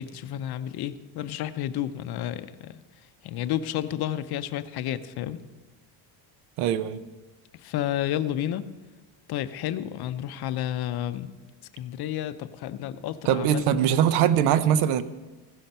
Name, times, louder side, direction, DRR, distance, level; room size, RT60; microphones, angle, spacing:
voice 1, 0.0-2.8 3.2-5.4 7.6-8.7 9.3-11.3 11.7-13.7, left 11 dB, 50° left, 13 dB, 0.6 m, -31 dB
voice 2, 6.6-7.0 13.2-15.0, right 9 dB, 75° right, 13 dB, 0.8 m, -22 dB
15.5 x 5.8 x 5.3 m, 1.2 s
cardioid pair, 115°, 49 cm